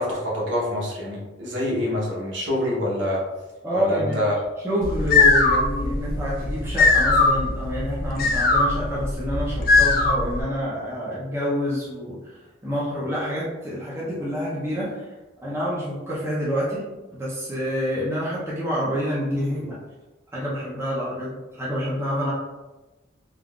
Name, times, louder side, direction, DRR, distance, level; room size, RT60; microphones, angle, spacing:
voice 1, 0.0-3.2 3.7-4.3, left 1 dB, 65° right, -5 dB, 1.0 m, -26 dB
voice 2, 3.6-4.2 4.6-15.1 15.4-19.8 20.3-22.3, equal, 10° right, -7 dB, 0.6 m, -27 dB
sound 1, 4.8-10.4, left 3 dB, 45° left, 0.4 m, -20 dB
3.6 x 2.4 x 2.4 m, 1.1 s
head